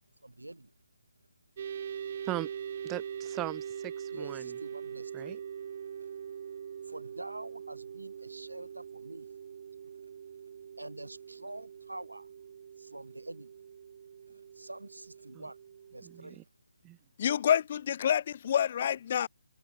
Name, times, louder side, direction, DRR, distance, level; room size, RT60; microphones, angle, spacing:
voice 1, 0.2-0.7 4.1-5.4 6.9-9.3 10.8-12.3 12.8-13.5 14.6-15.6 15.9-16.4, right 1 dB, 80° right, 4.1 m, -46 dB
sound 1, 1.6-16.3, right 8 dB, 40° right, 4.6 m, -43 dB
voice 2, 2.8-4.6 5.1-5.4 15.3-15.5 16.0-16.4 16.8-17.0, right 16 dB, 15° right, 3.6 m, -39 dB
voice 3, 17.2-19.3, left 9 dB, 40° left, 0.9 m, -27 dB
figure-of-eight pair, 140°, 0 cm